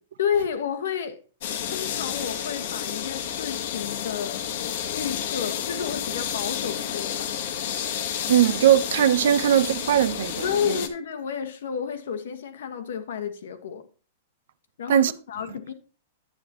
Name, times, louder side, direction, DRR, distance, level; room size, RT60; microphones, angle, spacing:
voice 1, 0.2-1.2 1.7-4.5 4.9-7.6 10.4-13.8 14.8-15.7, left 7 dB, 80° left, 1.2 m, -31 dB
sound 1, 1.4-10.9, left 9 dB, 60° left, 1.1 m, -31 dB
voice 2, 8.3-10.8 14.9-15.1, right 10 dB, 75° right, 0.6 m, -20 dB
9.6 x 8.0 x 2.9 m
hypercardioid pair, 150°, 0 cm